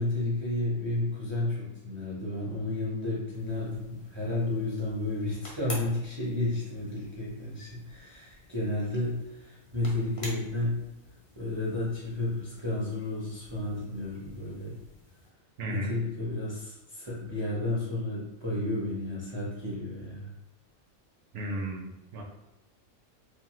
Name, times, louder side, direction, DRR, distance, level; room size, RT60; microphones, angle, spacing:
voice 1, 0.0-10.8 11.4-14.8 15.7-20.3, left 2 dB, 35° right, -6 dB, 0.4 m, -32 dB
sound 1, 3.3-15.3, left 1 dB, 40° left, 0.5 m, -49 dB
voice 2, 15.6-15.9 21.3-22.2, right 2 dB, 70° right, 0 dB, 0.8 m, -34 dB
3.1 x 2.1 x 3.0 m, 0.93 s
omnidirectional pair, 1.4 m